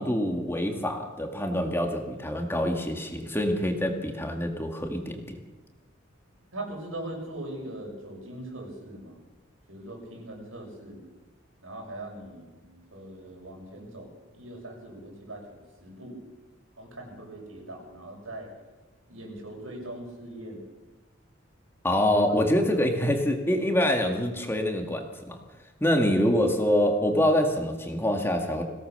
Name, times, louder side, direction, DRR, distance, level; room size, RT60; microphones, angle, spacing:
voice 1, 0.0-5.4 21.8-25.4 25.8-28.6, left 1 dB, 10° left, 3 dB, 2.0 m, -25 dB
voice 2, 6.5-9.2 9.7-11.0 11.6-16.2 16.8-18.5 19.1-20.6 22.7-22.8, right 1 dB, 85° right, 0 dB, 7.0 m, -41 dB
22.5 x 17.5 x 6.8 m, 1.2 s
head